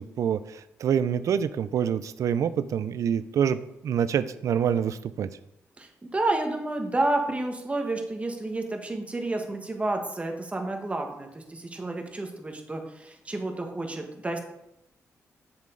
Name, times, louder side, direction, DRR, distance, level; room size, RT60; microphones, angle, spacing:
voice 1, 0.0-5.3, right 8 dB, 75° right, 14 dB, 0.4 m, -26 dB
voice 2, 5.8-14.4, right 2 dB, 25° right, 3 dB, 1.3 m, -30 dB
7.4 x 6.1 x 3.8 m, 0.83 s
cardioid pair, 80°, 6 cm